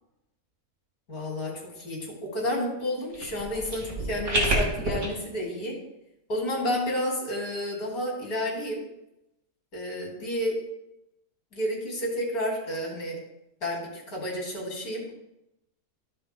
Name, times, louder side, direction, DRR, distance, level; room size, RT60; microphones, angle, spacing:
voice 1, 1.1-5.8 6.3-8.8 9.7-10.6 11.5-13.2 13.6-15.1, left 1 dB, 65° left, -1 dB, 3.1 m, -31 dB
sound 1, 3.1-5.1, right 1 dB, 65° right, 3.4 m, -28 dB
15.0 x 7.8 x 2.2 m, 0.88 s
omnidirectional pair, 1.6 m